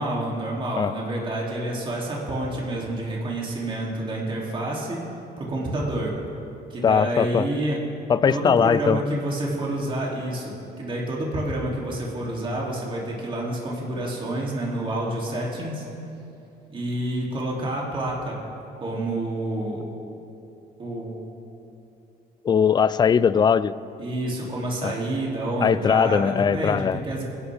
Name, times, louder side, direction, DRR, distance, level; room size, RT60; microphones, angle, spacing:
voice 1, 0.0-5.0 5.4-6.1 6.7-7.8 8.3-15.8 16.7-18.4 18.8-19.8 20.8-21.2 24.0-27.2, right 1 dB, 30° right, -3 dB, 2.9 m, -28 dB
voice 2, 6.8-7.5 8.1-9.0 22.4-23.7 24.8-24.9 25.6-27.0, left 7 dB, 25° left, 17 dB, 0.4 m, -20 dB
23.0 x 11.5 x 3.5 m, 2.7 s
cardioid pair, 110°, 17 cm